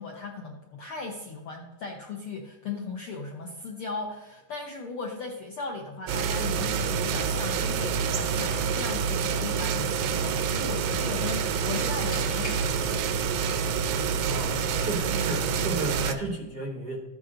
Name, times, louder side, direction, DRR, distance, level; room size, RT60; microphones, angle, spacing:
voice 1, 0.0-13.2, left 3 dB, 70° left, 0 dB, 1.3 m, -37 dB
sound 1, 6.1-16.1, right 6 dB, 90° right, 1.4 m, -27 dB
sound 2, 8.4-8.9 11.7-13.3, left 1 dB, 40° left, 5.1 m, -42 dB
voice 2, 14.3-17.0, right 2 dB, 70° right, 1 dB, 0.9 m, -33 dB
13.5 x 9.2 x 3.8 m, 1.1 s
omnidirectional pair, 3.7 m